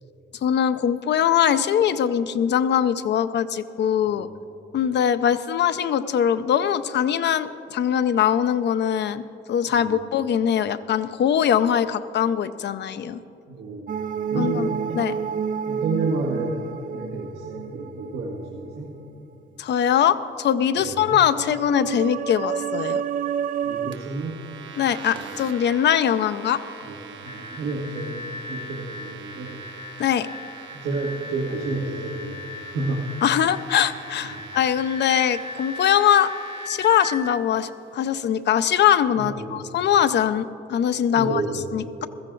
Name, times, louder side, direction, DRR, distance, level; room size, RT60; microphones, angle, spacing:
voice 1, 0.4-4.3 4.7-13.2 14.3-15.1 19.6-23.0 24.8-26.6 30.0-30.3 33.2-36.3 36.7-41.4 41.7-42.1, left 9 dB, 60° left, 12 dB, 0.6 m, -22 dB
voice 2, 13.5-14.0 14.3-15.0 15.6-16.6 16.9-18.9 20.8-21.2 23.6-24.4 26.9-29.6 30.7-32.4 32.7-33.1 34.3-34.4 39.2-39.7 41.1-41.7, right 3 dB, 85° right, -3 dB, 1.6 m, -30 dB
sound 1, 13.9-18.7 21.3-24.0, right 8 dB, 45° right, 0.4 m, -29 dB
sound 2, 23.9-36.7, right 5 dB, 70° right, 1.2 m, -43 dB
sound 3, 27.2-37.4, left 3 dB, 20° left, 0.7 m, -39 dB
15.5 x 14.0 x 3.9 m, 2.8 s
cardioid pair, 90°, 20 cm